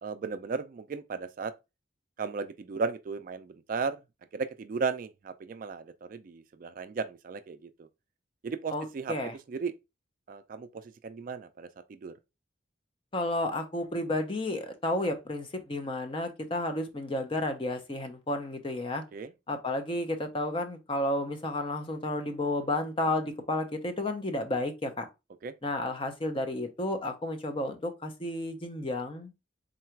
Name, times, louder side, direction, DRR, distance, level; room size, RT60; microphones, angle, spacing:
voice 1, 0.0-1.5 2.2-4.0 4.3-7.9 8.4-9.1 9.5-9.7 10.3-12.1 19.1-19.3 25.4-25.5, right 5 dB, 45° right, 0.3 m, -35 dB
voice 2, 8.7-9.3 13.1-19.0 19.5-25.1 25.6-29.3, left 1 dB, 25° left, 0.6 m, -32 dB
3.8 x 2.4 x 4.4 m
head